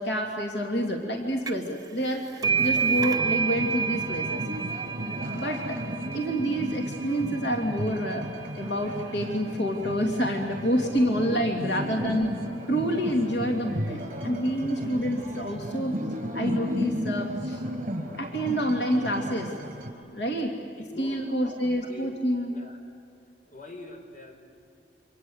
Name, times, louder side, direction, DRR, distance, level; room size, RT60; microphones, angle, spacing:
voice 1, 0.0-2.3 2.6-4.4 5.3-5.8 6.1-8.3 8.6-12.3 12.7-16.0 16.3-17.6 18.2-19.5 20.1-20.6 21.0-22.5, equal, 85° left, 2 dB, 2.7 m, -28 dB
sound 1, 1.5-1.8 2.0-9.3, right 6 dB, 20° right, 1.0 m, -30 dB
sound 2, 2.4-19.9, equal, 45° right, 5.1 m, -34 dB
voice 2, 11.6-12.1 14.5-14.8 20.4-22.1 22.5-22.8 23.4-24.4, left 1 dB, 45° left, 4 dB, 4.5 m, -44 dB
28.5 x 25.5 x 8.0 m, 2.6 s
head